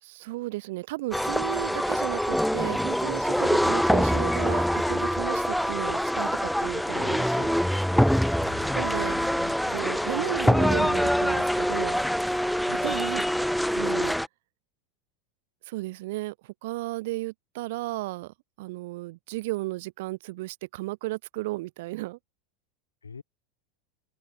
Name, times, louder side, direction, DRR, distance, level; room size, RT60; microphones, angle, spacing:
voice 1, 0.0-7.5 8.7-9.2 9.7-12.0 12.7-14.1 15.7-22.2, right 20 dB, 60° right, 2.7 m, -34 dB
sound 1, 1.1-14.3, equal, ahead, 0.8 m, -25 dB
voice 2, 8.4-9.7 10.2-10.5 12.7-13.0 23.0-23.2, left 5 dB, 80° left, 7.5 m, -46 dB
open air
figure-of-eight pair, 85°, 0 cm